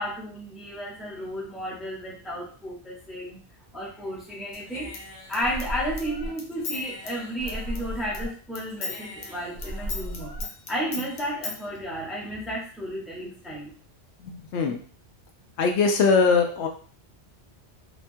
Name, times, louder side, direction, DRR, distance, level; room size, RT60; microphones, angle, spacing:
voice 1, 0.0-3.4 3.7-4.9 5.3-10.4 10.7-13.7, equal, ahead, -4 dB, 0.5 m, -33 dB
Human voice / Scissors, 4.5-8.3 8.5-11.6, left 1 dB, 55° left, 0.6 m, -35 dB
voice 2, 14.2-14.8 15.6-16.7, left 4 dB, 90° left, 4 dB, 0.9 m, -21 dB
2.8 x 2.2 x 2.6 m, 0.42 s
omnidirectional pair, 1.1 m